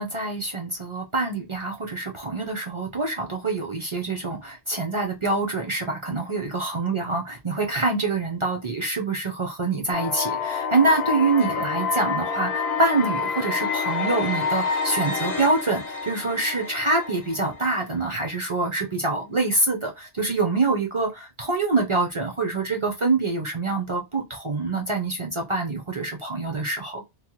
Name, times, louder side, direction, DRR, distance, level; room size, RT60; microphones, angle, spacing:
voice 1, 0.0-27.0, right 3 dB, 40° right, 0.5 m, -25 dB
sound 1, 9.9-17.9, left 5 dB, 70° left, 1.0 m, -28 dB
3.1 x 2.1 x 2.9 m
omnidirectional pair, 1.2 m